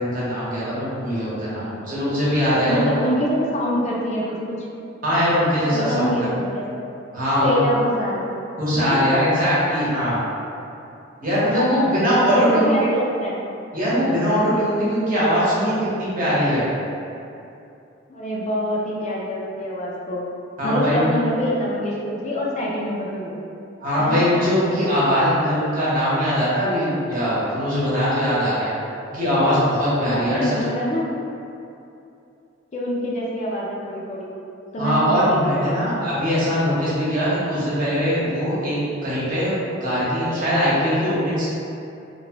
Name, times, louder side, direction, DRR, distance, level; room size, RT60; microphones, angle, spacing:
voice 1, 0.0-2.9 5.0-6.2 7.1-7.6 8.6-10.2 11.2-12.7 13.7-16.7 20.6-21.1 23.8-28.7 29.1-30.6 34.8-38.8 39.0-41.5, equal, 45° right, -9 dB, 0.9 m, -21 dB
voice 2, 1.3-1.8 2.7-4.7 5.7-6.7 7.2-8.2 8.8-9.0 11.5-13.4 18.1-20.2 20.6-23.3 24.0-24.2 30.1-31.1 32.7-34.3 34.7-35.9, left 1 dB, 35° left, -4 dB, 0.4 m, -25 dB
2.9 x 2.1 x 2.8 m, 2.7 s
head